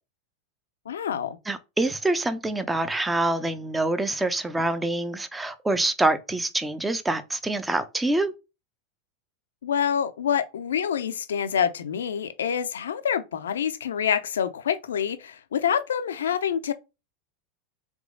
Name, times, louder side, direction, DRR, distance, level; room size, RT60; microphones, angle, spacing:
voice 1, 0.9-1.4 9.6-16.7, left 8 dB, 90° left, 0.6 m, -26 dB
voice 2, 1.5-8.3, right 2 dB, 10° right, 0.7 m, -26 dB
3.5 x 3.1 x 3.8 m
hypercardioid pair, 110°, 0 cm